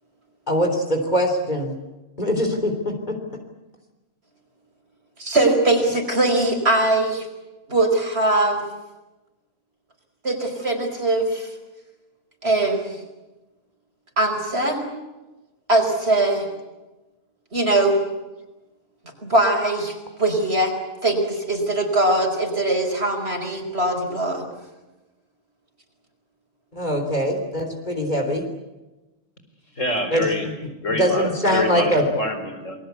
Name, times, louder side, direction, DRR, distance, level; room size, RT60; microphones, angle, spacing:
voice 1, 0.5-1.8 2.2-3.2 26.7-28.5 30.1-30.3 30.9-32.0, equal, 35° left, 4 dB, 3.6 m, -22 dB
voice 2, 5.2-7.3 7.7-8.6 10.2-11.5 12.4-13.0 14.2-14.8 15.7-16.5 17.5-18.0 19.2-20.7 21.0-24.4, right 2 dB, 55° right, 4 dB, 5.2 m, -21 dB
voice 3, 29.7-30.5 30.8-32.8, left 1 dB, 85° left, 6 dB, 5.1 m, -26 dB
27.5 x 22.0 x 8.3 m, 1.1 s
omnidirectional pair, 1.3 m